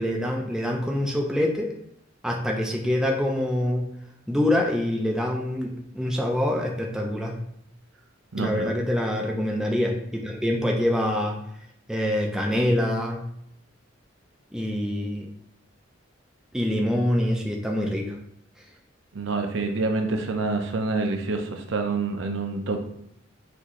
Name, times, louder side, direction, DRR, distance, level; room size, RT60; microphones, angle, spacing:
voice 1, 0.0-1.7 2.2-3.9 4.3-7.4 8.4-11.4 11.9-13.2 14.5-15.3 16.5-18.2, left 1 dB, 5° right, 0 dB, 0.4 m, -25 dB
voice 2, 8.3-8.7 19.1-22.8, right 3 dB, 65° right, 4 dB, 0.6 m, -27 dB
6.0 x 2.7 x 3.0 m, 0.73 s
head